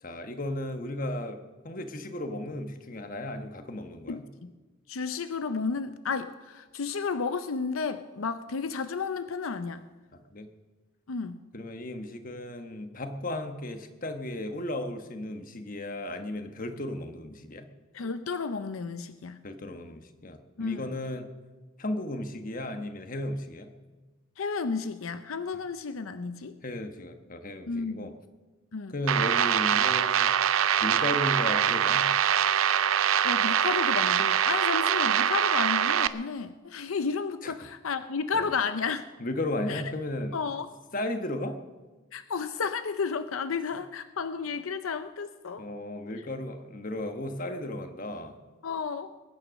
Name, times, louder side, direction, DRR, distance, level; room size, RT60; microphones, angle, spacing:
voice 1, 0.0-4.2 10.1-10.5 11.5-17.7 19.4-21.3 21.8-23.7 26.6-28.1 28.9-30.4 30.8-32.1 37.4-37.5 38.3-38.5 39.2-40.4 40.9-41.6 45.6-48.4, left 1 dB, 40° left, 7 dB, 1.2 m, -35 dB
voice 2, 4.1-4.5 4.9-9.9 11.1-11.4 17.9-19.4 20.6-20.9 24.4-26.6 27.7-28.1 28.7-28.9 33.2-39.1 39.7-39.8 40.3-40.7 42.1-45.7 48.6-49.1, left 5 dB, 80° left, 11 dB, 0.6 m, -32 dB
sound 1, 29.1-36.1, right 9 dB, 80° right, 0.6 m, -24 dB
21.5 x 9.7 x 6.4 m, 1.2 s
head